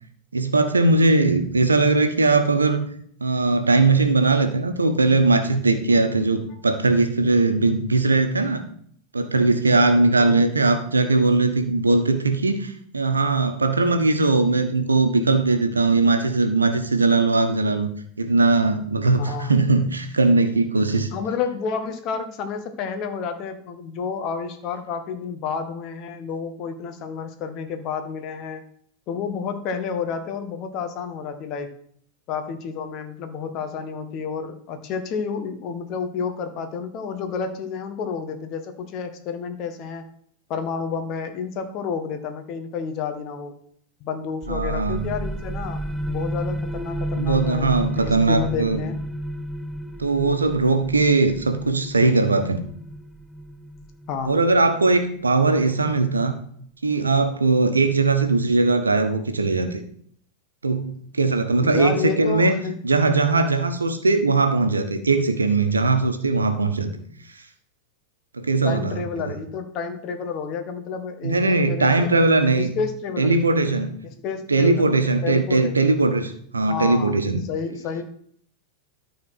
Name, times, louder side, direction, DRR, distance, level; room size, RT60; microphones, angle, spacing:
voice 1, 0.3-2.9 3.2-8.6 9.1-17.9 18.2-21.1 44.5-45.0 47.1-48.8 50.0-52.7 54.3-56.3 56.8-59.8 60.6-62.6 62.8-66.9 68.3-69.4 71.2-72.7 73.2-73.9 74.5-77.4, right 3 dB, 75° right, 7 dB, 1.2 m, -20 dB
voice 2, 19.2-19.6 21.1-28.6 29.1-31.7 32.3-40.1 40.5-43.6 44.0-47.7 48.0-49.0 54.1-54.4 61.6-62.8 68.6-72.2 72.6-73.3 74.1-74.8 75.2-75.8 76.7-78.0, left 6 dB, 40° left, 7 dB, 1.5 m, -30 dB
sound 1, 44.4-55.8, equal, 5° left, 0.9 m, -32 dB
13.0 x 4.3 x 6.0 m, 0.62 s
figure-of-eight pair, 90°, 0 cm